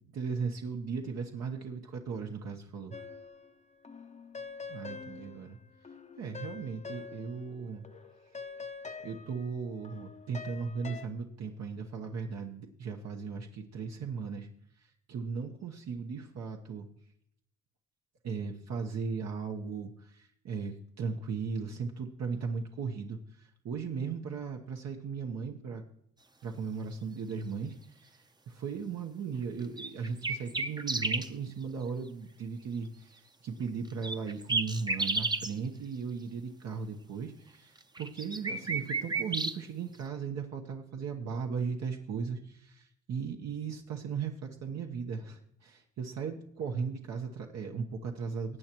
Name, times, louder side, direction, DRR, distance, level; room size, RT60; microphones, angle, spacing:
voice 1, 0.1-3.0 4.7-5.6 6.2-7.9 9.0-14.5 14.8-16.9 18.2-25.8 26.4-48.6, right 5 dB, 60° right, 2 dB, 1.1 m, -37 dB
sound 1, 2.9-3.6 3.8-7.6 7.8-11.1, left 5 dB, 25° left, 0.8 m, -45 dB
sound 2, 29.8-31.3 34.0-35.5 37.8-39.6, right 3 dB, 15° right, 0.8 m, -32 dB
19.0 x 8.6 x 3.0 m, 0.72 s
cardioid pair, 90°, 30 cm